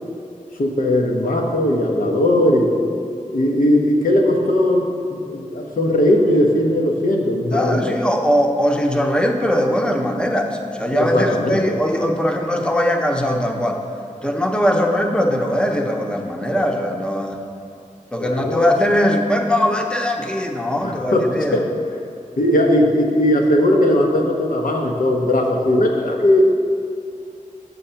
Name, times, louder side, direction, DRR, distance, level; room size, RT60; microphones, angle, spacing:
voice 1, 0.6-2.7 3.3-8.0 10.9-11.8 18.2-18.7 20.8-21.7 22.4-26.4, left 1 dB, 85° left, 1 dB, 0.8 m, -18 dB
voice 2, 7.5-13.8 14.2-17.4 18.1-21.6, equal, 5° left, 2 dB, 0.6 m, -20 dB
6.9 x 3.9 x 5.6 m, 2.5 s
wide cardioid pair, 70°, 14 cm